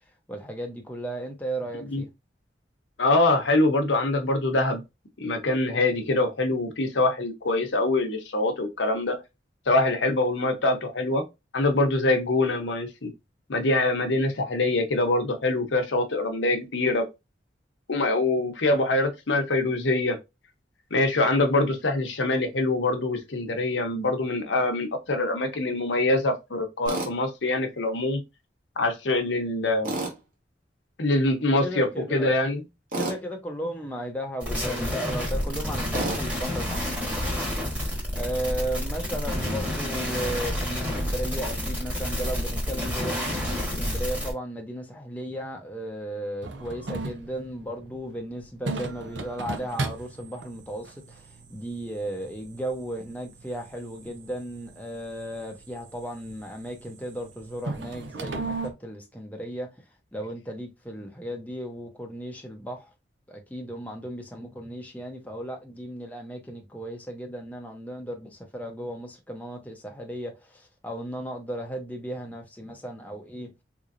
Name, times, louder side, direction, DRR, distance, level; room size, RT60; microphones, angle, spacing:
voice 1, 0.3-2.1 31.6-32.4 33.0-59.8 60.1-62.9 63.3-73.5, right 1 dB, 10° left, 0.7 m, -35 dB
voice 2, 3.0-4.8 5.2-9.2 9.7-11.2 11.5-13.1 13.5-17.0 17.9-20.2 20.9-28.2 28.8-29.9 31.0-32.6, left 2 dB, 85° left, 0.9 m, -24 dB
Tools, 26.9-27.1 29.8-30.2 32.9-33.2 35.9-36.2, right 2 dB, 50° right, 1.2 m, -29 dB
sound 1, 34.4-44.3, equal, 10° right, 1.3 m, -29 dB
sound 2, 46.4-58.7, right 3 dB, 85° right, 0.7 m, -38 dB
3.8 x 3.1 x 2.5 m
head